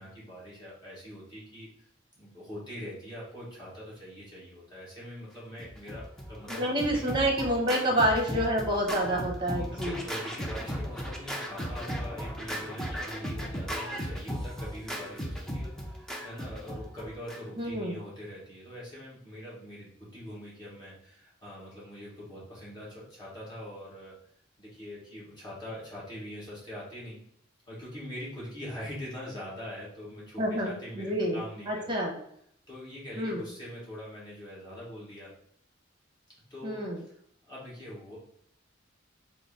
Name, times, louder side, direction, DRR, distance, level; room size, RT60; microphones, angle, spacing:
voice 1, 0.0-1.7 2.2-7.0 7.8-8.0 9.5-24.1 24.6-27.2 27.7-31.9 32.7-35.3 36.5-36.8 37.1-37.2 37.5-38.2, left 1 dB, 20° left, -8 dB, 1.4 m, -43 dB
Scratching (performance technique), 5.6-17.7, equal, ahead, 0.4 m, -36 dB
voice 2, 6.5-10.0 17.6-18.0 30.4-31.4 31.7-32.2 33.2-33.4 36.6-37.0, right 1 dB, 25° right, 0 dB, 0.9 m, -28 dB
3.8 x 2.0 x 3.7 m, 0.70 s
head